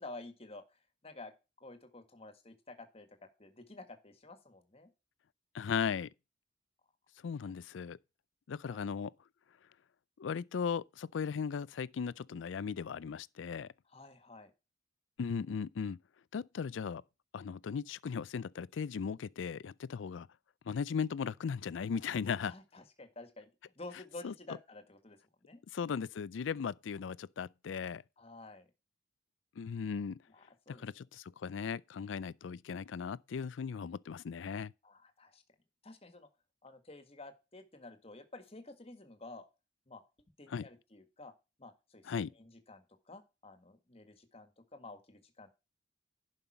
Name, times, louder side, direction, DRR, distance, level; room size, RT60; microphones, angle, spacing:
voice 1, 0.0-1.3 1.6-3.1 3.4-4.9 8.6-8.8 13.9-14.5 22.4-23.5 23.7-25.6 28.2-28.7 30.3-30.9 34.8-35.4 35.8-36.3 36.6-39.5 39.9-40.0 40.4-41.3 41.6-45.5, left 2 dB, 30° left, 1.7 m, -51 dB
voice 2, 5.5-6.1 7.2-8.0 8.5-9.1 10.2-13.7 15.2-16.0 16.3-17.0 17.3-20.3 20.7-22.5 24.2-24.3 25.7-28.0 29.6-30.2 30.7-34.7 40.5-40.7 42.1-42.3, left 6 dB, 75° left, 0.4 m, -37 dB
11.0 x 5.5 x 4.3 m
head